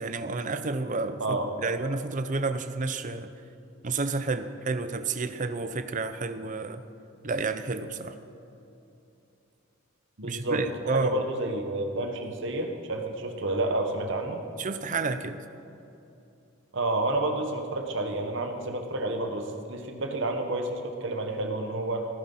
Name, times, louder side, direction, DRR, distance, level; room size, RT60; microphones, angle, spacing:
voice 1, 0.0-3.3 3.8-6.8 7.2-8.2 10.2-11.2 14.6-15.4, right 3 dB, 35° right, 10 dB, 0.6 m, -30 dB
voice 2, 10.2-14.4 16.7-22.1, right 2 dB, 60° right, 4 dB, 1.4 m, -30 dB
16.5 x 10.5 x 5.6 m, 2.8 s
head